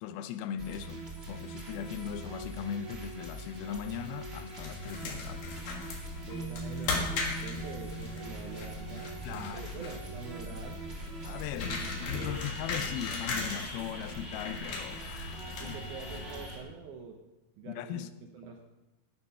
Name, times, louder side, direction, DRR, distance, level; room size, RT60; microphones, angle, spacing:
voice 1, 0.0-5.5 9.2-9.7 11.2-15.8 17.6-18.1, left 10 dB, 80° left, 2.4 m, -39 dB
sound 1, 0.6-16.6, right 1 dB, 25° right, 1.5 m, -43 dB
sound 2, 4.5-16.6, left 3 dB, 60° left, 3.2 m, -38 dB
sound 3, 6.3-10.6, right 2 dB, 45° left, 2.2 m, -44 dB
voice 2, 6.3-11.0 12.1-12.5 15.6-17.2 17.6-18.1 18.3-18.7, right 5 dB, 75° right, 1.9 m, -45 dB
9.9 x 9.8 x 5.6 m
omnidirectional pair, 4.5 m